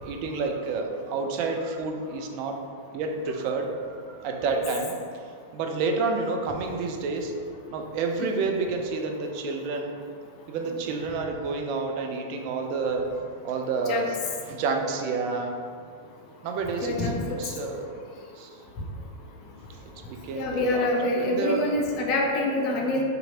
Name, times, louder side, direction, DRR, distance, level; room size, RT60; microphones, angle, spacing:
voice 1, 0.0-2.6 2.9-4.9 5.5-7.3 7.7-10.0 10.5-13.1 13.4-14.2 14.4-15.5 16.4-18.0 18.4-18.5 20.0-20.9 21.2-21.6, right 4 dB, 45° right, 3 dB, 0.3 m, -29 dB
voice 2, 16.8-17.4 20.3-23.0, left 2 dB, 40° left, 0 dB, 0.5 m, -26 dB
2.7 x 2.4 x 2.8 m, 2.1 s
figure-of-eight pair, 95°, 0 cm